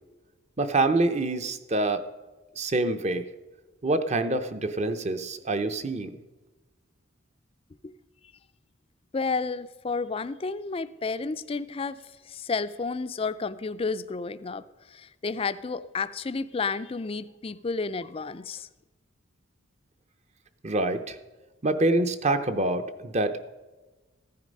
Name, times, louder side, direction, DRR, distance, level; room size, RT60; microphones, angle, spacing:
voice 1, 0.6-2.0 2.6-3.2 3.8-6.1 20.6-21.2 21.6-23.5, right 2 dB, 30° right, 9 dB, 0.7 m, -26 dB
voice 2, 9.1-18.7, left 4 dB, 25° left, 13 dB, 0.4 m, -31 dB
15.0 x 9.6 x 5.3 m, 1.2 s
head